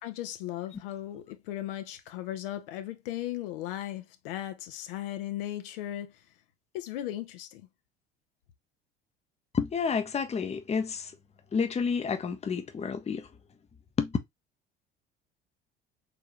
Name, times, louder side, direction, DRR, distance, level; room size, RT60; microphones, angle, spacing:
voice 1, 0.0-6.3 6.7-7.7, left 13 dB, 65° left, 0.8 m, -37 dB
voice 2, 9.5-11.1 11.5-13.3 14.0-14.2, left 5 dB, 20° left, 0.8 m, -29 dB
5.1 x 3.6 x 2.9 m
figure-of-eight pair, 60°, 30 cm